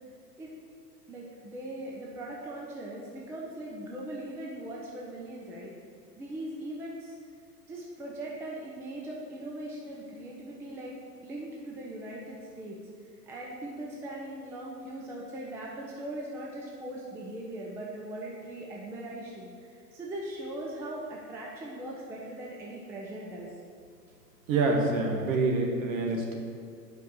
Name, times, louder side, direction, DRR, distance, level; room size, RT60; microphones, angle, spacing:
voice 1, 1.1-5.7 6.2-7.2 7.7-10.9 11.2-23.5, right 1 dB, 5° right, -3 dB, 0.5 m, -40 dB
voice 2, 24.5-26.3, right 3 dB, 50° right, 0 dB, 1.8 m, -26 dB
8.2 x 5.4 x 6.3 m, 2.3 s
figure-of-eight pair, 105°, 50 cm